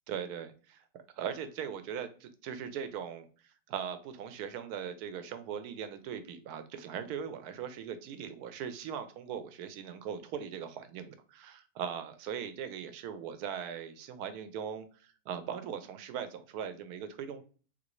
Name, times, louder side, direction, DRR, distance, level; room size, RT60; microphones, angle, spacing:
voice 1, 0.1-0.5 1.2-3.3 3.7-17.4, right 8 dB, 85° right, 10 dB, 1.1 m, -39 dB
3.6 x 2.5 x 2.9 m, 0.39 s
omnidirectional pair, 1.6 m